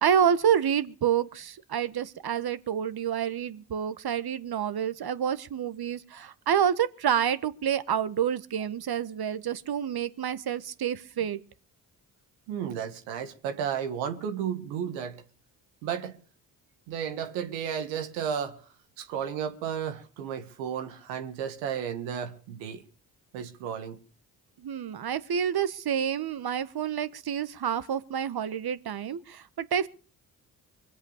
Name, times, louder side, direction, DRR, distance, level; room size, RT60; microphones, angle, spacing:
voice 1, 0.0-11.4 24.6-29.9, right 8 dB, 50° right, 1.5 m, -28 dB
voice 2, 12.5-15.2 15.8-16.2 16.9-18.7 19.0-22.8 23.3-24.0, right 8 dB, 85° right, 1.6 m, -33 dB
24.0 x 8.3 x 6.6 m
hypercardioid pair, 45°, 46 cm